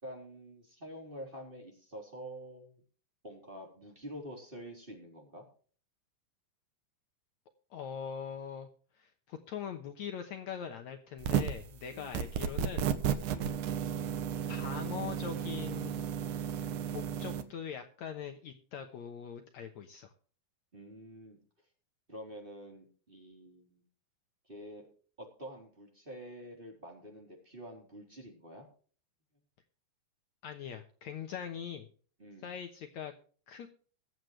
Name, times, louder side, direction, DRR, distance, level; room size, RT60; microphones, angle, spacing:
voice 1, 0.0-2.7 3.2-5.4 11.9-12.3 20.7-21.4 22.1-23.8 24.4-24.9 25.2-28.7 32.2-32.5, equal, 15° right, 0 dB, 3.4 m, -47 dB
voice 2, 7.7-8.7 8.9-12.9 14.5-16.1 16.9-20.1 30.4-31.9 32.4-33.1 33.5-33.7, left 8 dB, 85° left, 5 dB, 1.6 m, -42 dB
sound 1, 11.2-11.7 12.1-17.4, right 8 dB, 70° right, 1.9 m, -33 dB
22.5 x 7.9 x 3.2 m, 0.42 s
omnidirectional pair, 4.8 m